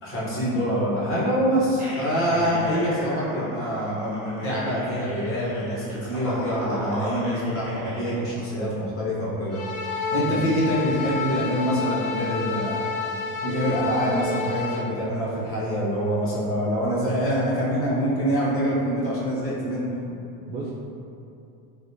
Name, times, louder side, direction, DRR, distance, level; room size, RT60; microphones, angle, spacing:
voice 1, 0.0-9.6 10.1-12.8 13.4-19.9, equal, 30° left, -8 dB, 0.8 m, -25 dB
sound 1, 1.8-8.1, equal, 20° right, 1.1 m, -36 dB
voice 2, 2.3-2.6 8.7-9.0 10.2-10.4 18.3-18.4 20.5-20.7, right 2 dB, 80° right, -6 dB, 0.8 m, -36 dB
sound 2, 9.5-14.8, left 4 dB, 85° left, 0.8 m, -29 dB
3.3 x 2.9 x 2.6 m, 2.6 s
cardioid pair, 150°, 43 cm